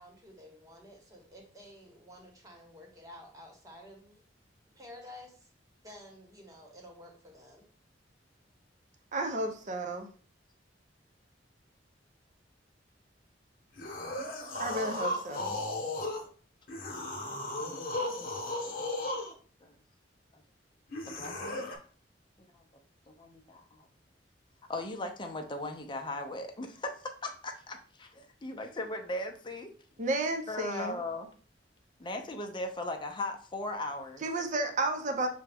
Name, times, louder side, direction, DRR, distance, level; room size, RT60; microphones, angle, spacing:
voice 1, 0.0-4.2 4.7-5.5 5.8-7.6, left 1 dB, 20° right, 0 dB, 1.1 m, -51 dB
voice 2, 9.1-10.1 14.6-15.6 30.0-31.0 34.2-35.3, right 2 dB, 45° right, 4 dB, 0.6 m, -32 dB
sound 1, 13.8-16.3 16.7-19.3 20.9-21.8, left 1 dB, 50° left, 0.9 m, -35 dB
voice 3, 18.2-19.2 19.6-19.7 20.3-20.4 21.1-21.7 22.5-22.6 23.1-23.9 24.7-29.7 30.5-31.3 32.0-34.2, left 2 dB, 25° left, 4 dB, 0.6 m, -38 dB
6.0 x 2.2 x 3.4 m, 0.43 s
head